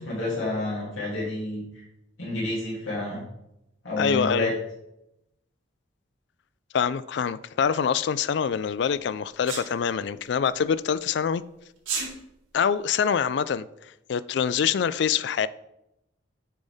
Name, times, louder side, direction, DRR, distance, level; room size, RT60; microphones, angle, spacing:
voice 1, 0.0-1.8 2.2-3.2 3.8-4.5, left 1 dB, 85° left, 2.9 m, -29 dB
voice 2, 4.0-4.5 6.7-11.4 12.5-13.7 14.1-15.5, left 7 dB, 60° left, 0.3 m, -25 dB
Sneeze, 9.5-9.7 11.8-12.1, right 5 dB, 90° right, 2.0 m, -29 dB
9.2 x 5.4 x 3.5 m
head